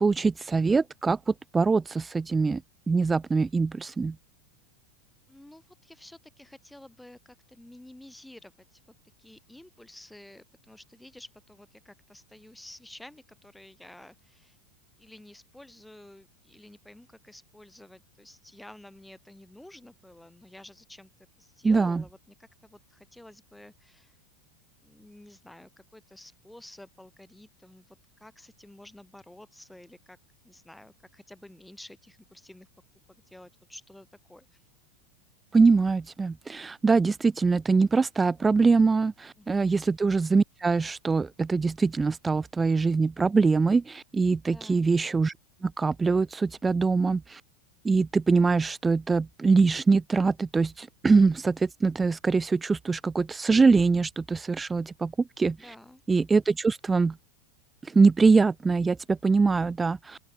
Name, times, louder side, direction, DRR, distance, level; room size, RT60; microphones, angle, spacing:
voice 1, 0.0-2.6 2.9-4.2 21.6-22.0 35.5-45.3 45.6-47.4 47.8-55.7 56.1-57.1 57.8-60.2, right 4 dB, 15° right, 0.3 m, -23 dB
voice 2, 5.3-8.8 9.2-14.6 15.0-21.1 21.4-24.2 24.8-30.2 30.4-32.7 33.1-34.6 39.4-39.7 44.5-44.9 55.6-56.0, left 1 dB, 5° left, 6.4 m, -51 dB
open air
hypercardioid pair, 100°, 0 cm